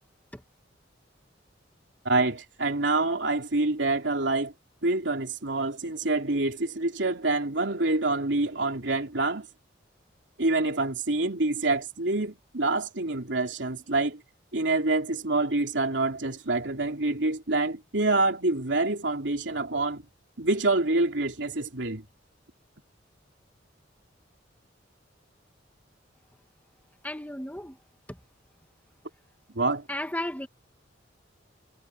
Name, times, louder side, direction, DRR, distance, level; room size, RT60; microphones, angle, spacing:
voice 1, 2.1-4.5 4.8-9.5 10.4-14.2 14.5-20.0 20.4-22.0 29.5-29.9, right 2 dB, 65° right, 3.5 m, -26 dB
voice 2, 27.0-27.8 28.1-28.2 29.9-30.5, left 1 dB, 10° left, 2.2 m, -34 dB
head